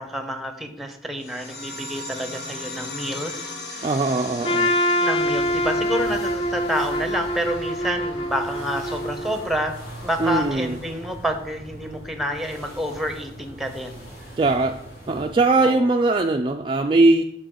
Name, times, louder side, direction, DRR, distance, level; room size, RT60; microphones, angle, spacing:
voice 1, 0.0-3.9 5.0-9.8 10.0-14.0 15.6-15.9, equal, ahead, 6 dB, 0.8 m, -29 dB
sound 1, 1.2-12.2, left 2 dB, 80° left, 1.9 m, -39 dB
voice 2, 3.8-4.7 10.2-10.8 14.4-14.8 15.1-17.2, right 2 dB, 30° right, 4 dB, 0.3 m, -20 dB
Trumpet, 4.4-9.5, equal, 30° left, 0.5 m, -25 dB
sound 2, 5.2-15.5, right 1 dB, 55° left, 3.4 m, -41 dB
12.0 x 4.3 x 3.8 m, 0.74 s
head